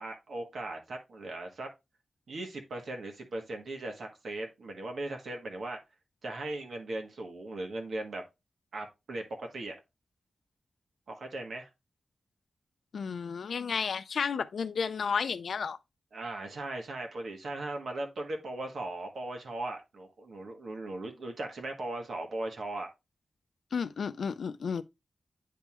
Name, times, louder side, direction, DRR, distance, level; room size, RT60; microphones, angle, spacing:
voice 1, 0.0-1.7 2.3-5.8 6.2-8.2 8.7-9.8 11.1-11.7 16.1-22.9, right 2 dB, 70° right, 1.4 m, -38 dB
voice 2, 12.9-15.8 23.7-24.8, left 6 dB, 75° left, 0.4 m, -32 dB
9.2 x 3.6 x 3.0 m
wide cardioid pair, 145°, 0 cm